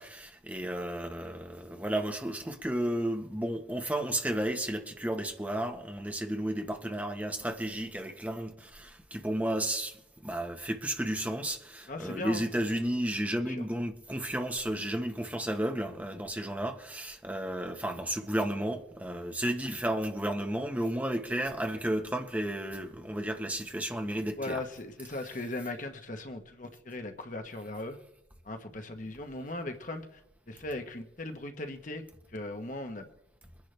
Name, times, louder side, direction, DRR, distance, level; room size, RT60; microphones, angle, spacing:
voice 1, 0.0-24.6, right 1 dB, 10° right, 1.3 m, -33 dB
voice 2, 11.9-12.4 13.5-13.6 24.4-28.0 28.4-30.2 30.5-33.1, left 2 dB, 45° left, 1.3 m, -38 dB
23.5 x 10.5 x 3.4 m
head